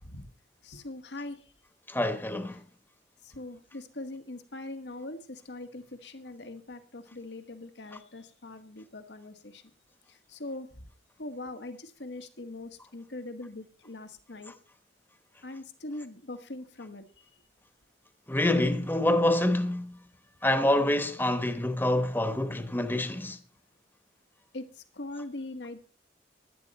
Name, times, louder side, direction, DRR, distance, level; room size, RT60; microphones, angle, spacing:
voice 1, 0.6-1.5 2.5-2.6 3.2-9.6 10.1-10.9 11.2-14.5 15.4-17.2 24.5-25.9, left 2 dB, 80° left, 1.6 m, -42 dB
voice 2, 1.9-2.6 18.3-20.0 20.4-23.4, left 1 dB, 10° left, 1.1 m, -26 dB
16.5 x 11.5 x 4.2 m
head